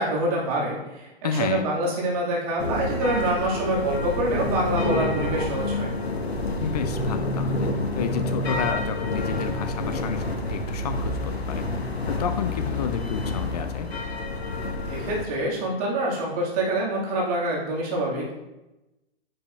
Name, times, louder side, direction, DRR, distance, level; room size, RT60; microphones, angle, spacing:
voice 1, 0.0-5.9 14.9-18.3, right 1 dB, 35° right, -4 dB, 2.3 m, -26 dB
voice 2, 1.2-1.7 6.6-11.7 12.1-13.9, left 7 dB, 40° left, 9 dB, 0.7 m, -31 dB
sound 1, 2.6-15.3, left 2 dB, 75° left, 1.0 m, -28 dB
10.0 x 5.6 x 2.6 m, 1.0 s
figure-of-eight pair, 115°, 31 cm